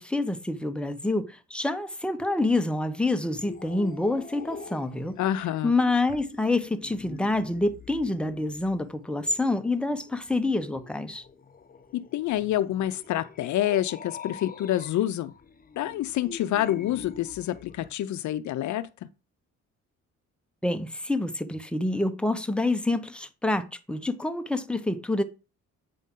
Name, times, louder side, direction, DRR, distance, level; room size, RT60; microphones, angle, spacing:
voice 1, 0.0-5.2 5.6-11.2 20.6-25.2, left 2 dB, 5° left, 0.9 m, -27 dB
sound 1, 3.3-17.9, left 6 dB, 30° left, 0.9 m, -46 dB
voice 2, 5.2-5.7 11.9-15.3 15.8-18.9, left 12 dB, 70° left, 0.6 m, -27 dB
8.3 x 5.4 x 3.7 m
cardioid pair, 90°, 30 cm